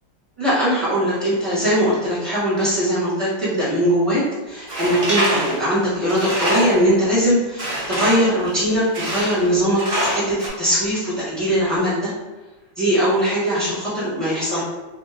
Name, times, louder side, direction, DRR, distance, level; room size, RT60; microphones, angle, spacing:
voice 1, 0.4-12.1 12.8-14.6, equal, ahead, -11 dB, 1.0 m, -20 dB
Tools, 4.7-6.9 7.6-8.4 8.9-9.5 9.8-10.5, right 1 dB, 75° right, 0.4 m, -24 dB
2.8 x 2.8 x 2.5 m, 1.2 s
omnidirectional pair, 2.0 m